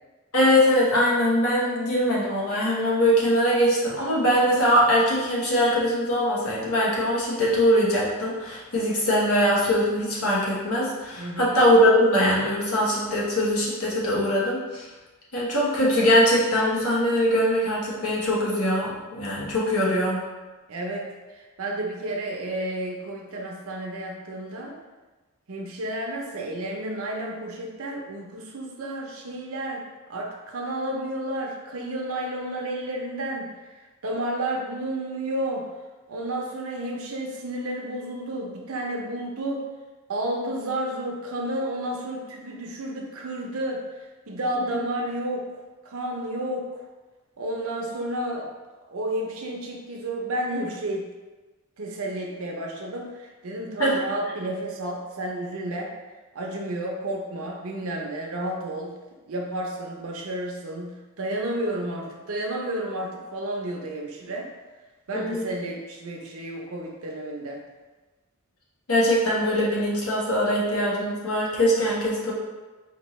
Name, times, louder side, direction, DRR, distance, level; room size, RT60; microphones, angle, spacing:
voice 1, 0.3-14.9 15.3-20.2 44.6-44.7 53.8-53.9 65.1-65.5 68.9-72.3, equal, 85° left, -5 dB, 1.1 m, -22 dB
voice 2, 11.2-11.5 20.7-24.8 25.5-29.8 30.1-33.7 34.0-35.7 36.1-39.6 40.1-43.8 44.3-45.6 45.8-46.8 47.4-48.5 48.9-51.1 51.8-55.9 56.3-58.9 59.3-64.5 65.1-67.6, right 1 dB, 75° right, 0 dB, 0.6 m, -31 dB
4.3 x 2.7 x 3.0 m, 1.2 s
head